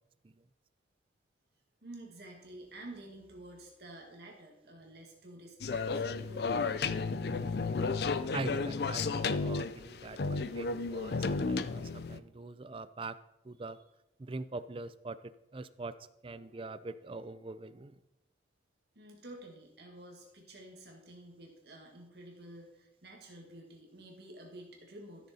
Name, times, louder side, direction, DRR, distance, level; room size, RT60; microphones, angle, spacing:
voice 1, 1.8-7.5 11.0-11.1 13.6-13.7 19.0-25.3, right 1 dB, 60° right, 0 dB, 1.9 m, -50 dB
sound 1, 5.6-12.2, left 4 dB, 55° left, 0.5 m, -33 dB
voice 2, 8.3-13.2 13.4-13.8 14.2-18.0, right 3 dB, 30° right, 14 dB, 0.4 m, -43 dB
13.5 x 6.7 x 4.2 m, 0.88 s
head